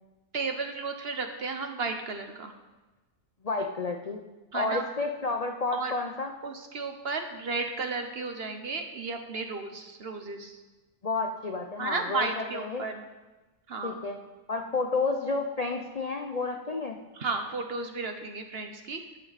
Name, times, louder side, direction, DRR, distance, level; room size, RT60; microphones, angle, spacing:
voice 1, 0.3-2.5 4.5-4.8 5.7-5.9 6.4-10.6 11.8-13.0 13.7-14.0 17.1-19.0, right 4 dB, 50° right, 6 dB, 1.1 m, -33 dB
voice 2, 3.4-4.2 4.5-6.3 11.0-12.8 13.8-14.2 14.5-17.0, left 3 dB, 45° left, 3 dB, 0.5 m, -31 dB
13.0 x 8.8 x 4.1 m, 1.2 s
omnidirectional pair, 1.5 m